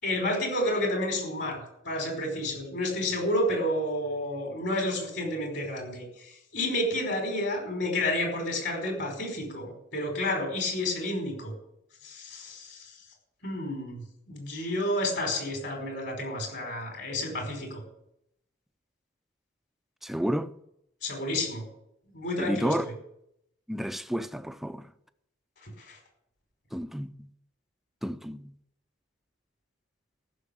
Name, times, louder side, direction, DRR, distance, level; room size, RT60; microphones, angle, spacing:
voice 1, 0.0-11.5 12.0-12.8 13.4-14.0 14.3-17.8 21.0-21.6 22.1-22.9 25.6-26.0, left 1 dB, 60° left, 5.1 m, -30 dB
voice 2, 20.0-20.5 22.4-22.9 23.7-24.9 26.7-27.3 28.0-28.5, equal, ahead, 0.5 m, -31 dB
15.0 x 6.8 x 8.6 m
head